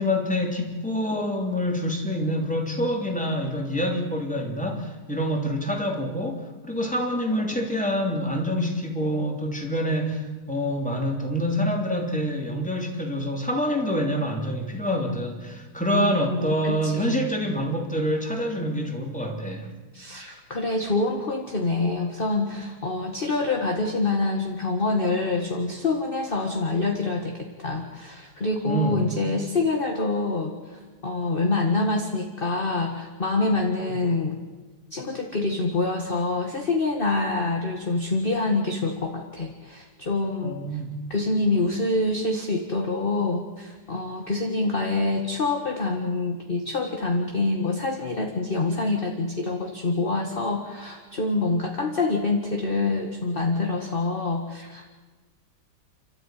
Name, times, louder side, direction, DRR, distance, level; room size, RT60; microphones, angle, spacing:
voice 1, 0.0-19.7 28.7-29.1 40.4-40.9, equal, 5° left, 1 dB, 3.0 m, -26 dB
voice 2, 15.9-17.2 19.9-34.4 34.9-40.6 41.1-54.9, left 3 dB, 30° left, 2 dB, 1.8 m, -26 dB
29.5 x 13.0 x 9.2 m, 1.3 s
omnidirectional pair, 1.9 m